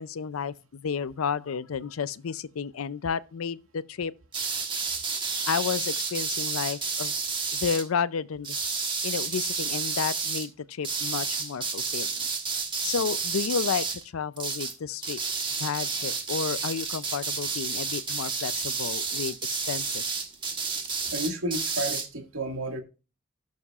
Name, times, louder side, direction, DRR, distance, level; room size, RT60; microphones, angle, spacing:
voice 1, 0.0-4.1 5.5-7.1 7.6-8.8 9.0-12.3 12.8-15.2 15.6-20.2, left 6 dB, 80° left, 0.5 m, -31 dB
sound 1, 4.3-7.8 8.4-10.5 10.8-14.0 14.4-14.8 15.0-22.1, right 5 dB, 25° right, 1.3 m, -30 dB
voice 2, 21.1-22.8, right 1 dB, 90° right, 1.9 m, -31 dB
17.5 x 6.4 x 2.4 m
head